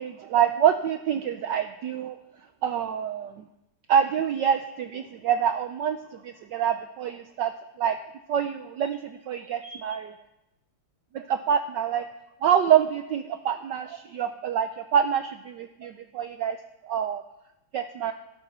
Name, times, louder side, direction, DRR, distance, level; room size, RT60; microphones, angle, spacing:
voice 1, 0.0-2.2 2.6-3.4 3.9-7.5 7.8-8.0 8.3-10.1 11.1-12.1 12.4-16.6 16.8-17.2 17.7-18.1, right 8 dB, 70° right, 8 dB, 1.1 m, -26 dB
16.5 x 12.5 x 4.3 m, 0.89 s
omnidirectional pair, 2.4 m